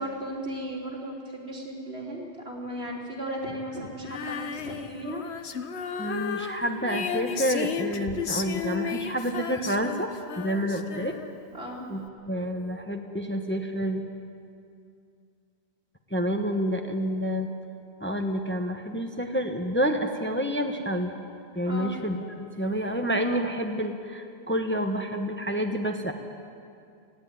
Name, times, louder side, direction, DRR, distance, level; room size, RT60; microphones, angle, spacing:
voice 1, 0.0-5.2 11.5-11.9 21.7-22.0, right 1 dB, 70° right, -3 dB, 3.6 m, -35 dB
Female singing, 4.0-11.5, left 7 dB, 80° left, 1.2 m, -34 dB
voice 2, 6.0-10.1 10.4-11.1 11.9-14.0 16.1-17.5 18.0-21.1 21.5-26.1, equal, 10° left, 4 dB, 1.0 m, -28 dB
19.0 x 15.5 x 9.5 m, 2.4 s
omnidirectional pair, 1.1 m